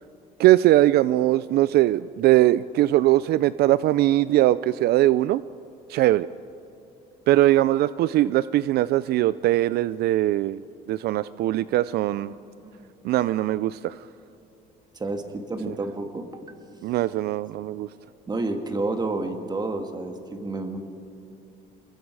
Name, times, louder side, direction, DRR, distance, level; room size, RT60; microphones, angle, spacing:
voice 1, 0.4-5.4 5.9-6.3 7.3-10.6 10.9-12.3 13.0-14.0 15.7-15.8 16.8-17.9, right 15 dB, 70° right, 17 dB, 0.4 m, -21 dB
voice 2, 12.2-12.9 14.9-16.7 18.3-20.8, right 2 dB, 25° right, 6 dB, 2.1 m, -30 dB
28.0 x 22.0 x 4.8 m, 2.8 s
cardioid pair, 110°, 17 cm